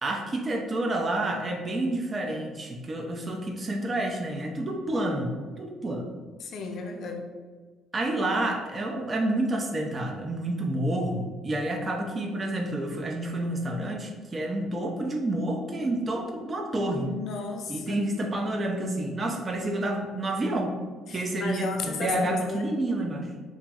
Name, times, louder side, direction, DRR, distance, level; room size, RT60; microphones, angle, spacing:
voice 1, 0.0-6.1 7.9-17.1 17.7-20.8 21.1-23.3, right 1 dB, 30° right, 2 dB, 0.4 m, -29 dB
voice 2, 6.4-7.2 16.7-18.0 21.1-22.7, left 4 dB, 60° left, 3 dB, 0.4 m, -34 dB
2.9 x 2.6 x 2.3 m, 1.5 s
cardioid pair, 110°, 0 cm